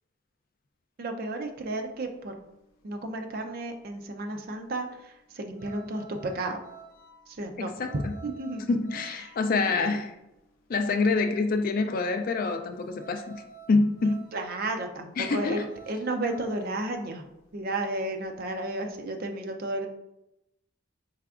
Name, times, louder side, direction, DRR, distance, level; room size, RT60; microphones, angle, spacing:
voice 1, 1.0-2.3 2.8-6.6 7.3-8.6 9.7-10.0 14.3-17.2 17.5-19.9, right 2 dB, 45° right, 4 dB, 0.4 m, -33 dB
sound 1, 1.3-19.3, right 5 dB, 80° left, 0.7 m, -52 dB
voice 2, 7.6-8.1 8.7-10.1 10.7-13.4 13.7-14.2 15.2-15.6, left 3 dB, 40° left, 6 dB, 0.3 m, -26 dB
4.8 x 3.3 x 2.4 m, 0.90 s
head